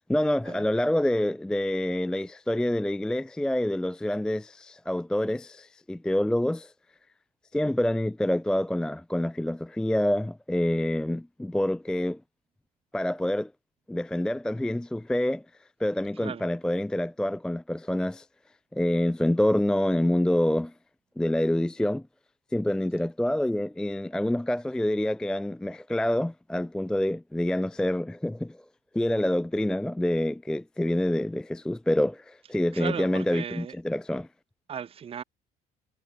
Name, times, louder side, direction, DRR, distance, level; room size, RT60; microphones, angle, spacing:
voice 1, 0.1-6.7 7.5-12.2 12.9-13.5 13.9-15.4 15.8-18.3 18.7-20.7 21.2-22.0 22.5-28.6 28.9-34.3, left 1 dB, 5° left, 0.4 m, -27 dB
voice 2, 32.7-33.7 34.7-35.2, right 8 dB, 35° right, 0.8 m, -36 dB
cardioid pair, 110°, 17 cm